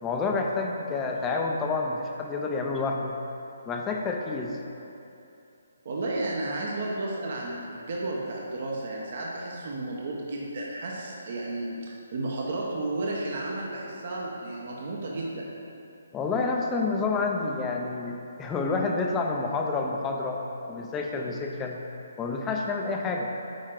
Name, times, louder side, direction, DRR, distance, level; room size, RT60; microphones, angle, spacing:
voice 1, 0.0-3.1 3.7-4.6 16.1-20.4 20.7-21.8 22.2-23.3, left 3 dB, 15° left, 1 dB, 0.6 m, -29 dB
voice 2, 5.8-15.5, right 2 dB, 50° right, -3 dB, 1.0 m, -33 dB
9.2 x 4.3 x 3.8 m, 2.8 s
hypercardioid pair, 155°, 0 cm